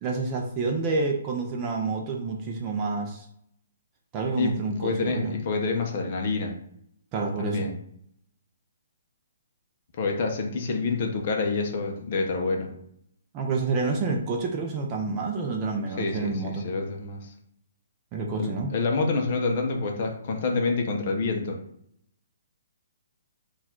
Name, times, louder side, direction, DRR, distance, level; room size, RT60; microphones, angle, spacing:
voice 1, 0.0-3.3 4.1-5.4 7.1-7.7 13.3-16.7 18.1-18.7, right 4 dB, 20° right, 1 dB, 0.4 m, -28 dB
voice 2, 4.8-6.5 7.4-7.7 10.0-12.7 16.0-17.2 18.3-21.6, left 3 dB, 35° left, 2 dB, 0.6 m, -27 dB
4.3 x 2.4 x 4.3 m, 0.71 s
hypercardioid pair, 175°, 0 cm